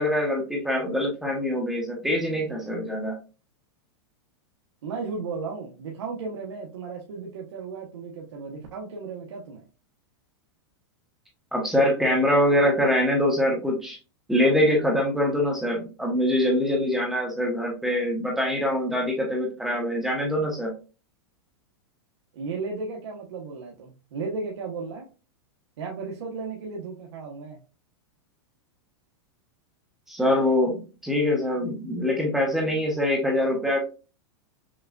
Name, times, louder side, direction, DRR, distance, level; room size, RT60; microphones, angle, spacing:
voice 1, 0.0-3.2 11.5-14.0 14.3-20.7 30.1-33.8, left 1 dB, ahead, 0 dB, 0.7 m, -24 dB
voice 2, 4.8-9.6 22.3-25.1 25.8-27.6, right 4 dB, 85° right, -2 dB, 1.0 m, -35 dB
6.2 x 2.3 x 2.4 m, 0.33 s
supercardioid pair, 170°, 14 cm